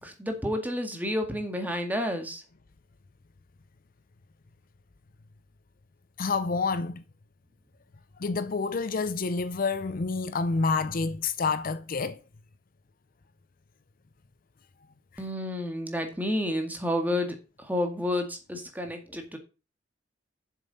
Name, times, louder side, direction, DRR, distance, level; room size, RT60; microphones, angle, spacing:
voice 1, 0.0-2.4 15.2-17.4 17.6-19.4, left 1 dB, 10° right, 2.0 m, -30 dB
voice 2, 6.2-7.0 8.2-12.2, left 4 dB, 50° left, 0.6 m, -28 dB
7.5 x 7.0 x 5.5 m
head